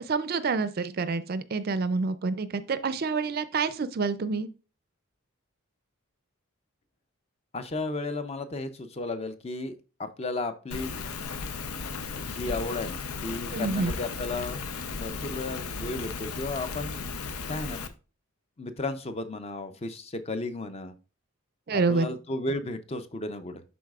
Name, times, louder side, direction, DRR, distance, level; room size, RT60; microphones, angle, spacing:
voice 1, 0.1-4.5 13.5-13.9 21.7-22.1, right 4 dB, 45° right, 13 dB, 0.4 m, -27 dB
voice 2, 7.5-10.9 12.1-14.6 14.9-16.9 17.5-17.8 18.6-20.9 21.7-23.6, left 2 dB, 30° left, 10 dB, 0.5 m, -34 dB
Rain, 10.7-17.9, left 4 dB, 90° left, 0.7 m, -35 dB
11.0 x 4.0 x 2.4 m, 0.33 s
head